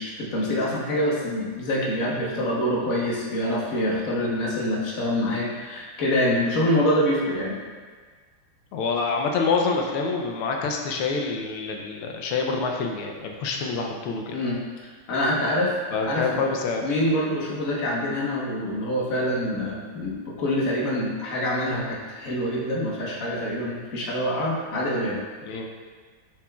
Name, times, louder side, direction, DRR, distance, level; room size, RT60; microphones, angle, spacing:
voice 1, 0.0-7.6 14.3-14.6 15.1-15.8 16.0-16.5 16.8-25.2, left 1 dB, 45° left, -4 dB, 1.4 m, -25 dB
voice 2, 8.7-14.4 15.9-16.8 25.4-25.7, left 4 dB, 90° left, 2 dB, 1.6 m, -26 dB
7.4 x 7.0 x 2.4 m, 1.5 s
omnidirectional pair, 2.3 m